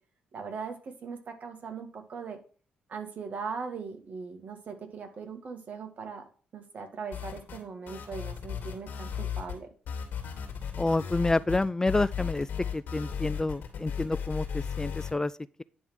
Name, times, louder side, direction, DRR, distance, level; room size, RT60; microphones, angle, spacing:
voice 1, 0.3-2.4 2.9-6.2 6.5-9.7, right 5 dB, 55° right, 1.9 m, -39 dB
sound 1, 7.1-7.6 7.9-9.6 9.9-15.1, left 7 dB, 70° left, 2.3 m, -35 dB
voice 2, 10.8-15.6, left 2 dB, 15° left, 0.3 m, -29 dB
10.0 x 3.6 x 6.1 m
supercardioid pair, 60°, 3 cm